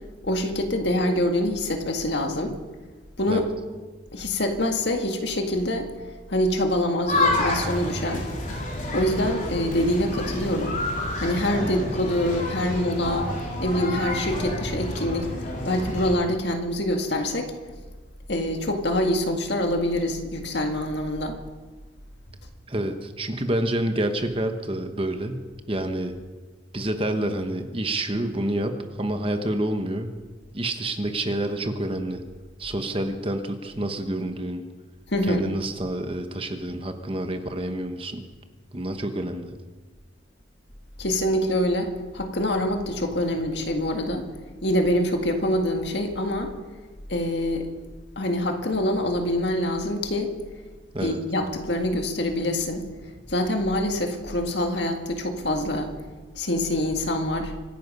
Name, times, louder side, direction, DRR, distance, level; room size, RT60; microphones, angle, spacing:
voice 1, 0.2-2.5 3.2-3.5 4.1-5.9 6.3-8.3 8.9-10.8 11.2-13.3 13.6-15.3 15.6-17.5 18.3-21.4 35.1-35.5 41.0-44.2 44.6-46.5 47.1-47.7 48.2-50.3 51.0-52.9 53.3-55.9 56.4-57.5, left 1 dB, 60° left, 4 dB, 2.0 m, -25 dB
sound 1, 7.1-16.1, left 2 dB, 40° left, 3.7 m, -29 dB
voice 2, 22.7-25.4 25.7-26.1 26.7-30.1 30.5-32.2 32.6-34.6 35.3-38.2 38.7-39.5 50.9-51.2, right 1 dB, 30° right, 7 dB, 1.1 m, -28 dB
25.5 x 10.0 x 5.5 m, 1.3 s
head